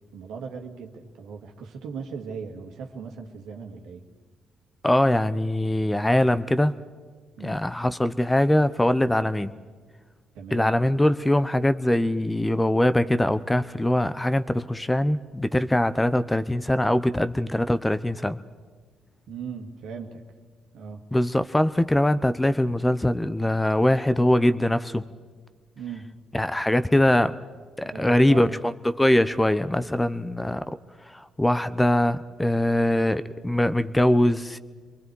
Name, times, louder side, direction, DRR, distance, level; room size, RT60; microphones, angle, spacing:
voice 1, 0.1-4.0 7.4-7.6 10.3-10.7 19.3-20.2 20.7-21.0 25.8-26.1 27.8-28.6, right 5 dB, 70° right, 4 dB, 1.9 m, -38 dB
voice 2, 4.8-6.7 7.4-9.5 10.5-18.4 21.1-25.0 26.3-27.4 27.8-30.6 31.1-34.6, left 1 dB, 15° left, 13 dB, 0.8 m, -22 dB
29.0 x 23.5 x 4.7 m, 1.5 s
hypercardioid pair, 45°, 0 cm